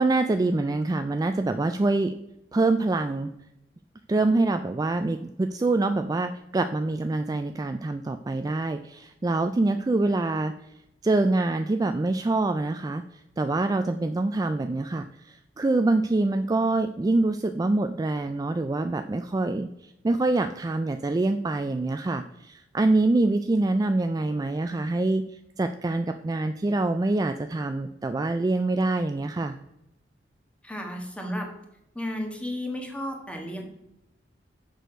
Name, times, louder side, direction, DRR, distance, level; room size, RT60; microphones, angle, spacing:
voice 1, 0.0-2.1 2.5-3.3 4.1-10.5 11.0-25.2 25.6-29.6, right 2 dB, 20° right, 8 dB, 0.3 m, -25 dB
voice 2, 30.6-31.5 31.9-33.6, left 1 dB, 5° left, 2 dB, 1.5 m, -33 dB
6.7 x 6.4 x 5.0 m, 0.84 s
head